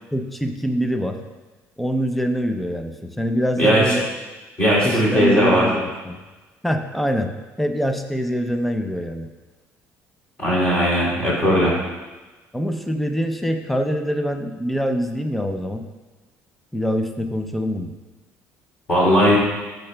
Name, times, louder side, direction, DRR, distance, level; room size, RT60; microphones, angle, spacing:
voice 1, 0.1-1.2 1.8-4.1 4.8-6.2 6.6-9.3 12.5-15.8 16.7-17.9, equal, ahead, 6 dB, 0.4 m, -24 dB
voice 2, 3.6-3.9 4.6-5.7 10.4-11.8 18.9-19.4, equal, 20° left, -5 dB, 2.6 m, -18 dB
14.0 x 6.6 x 2.2 m, 1.2 s
cardioid pair, 175°, 5 cm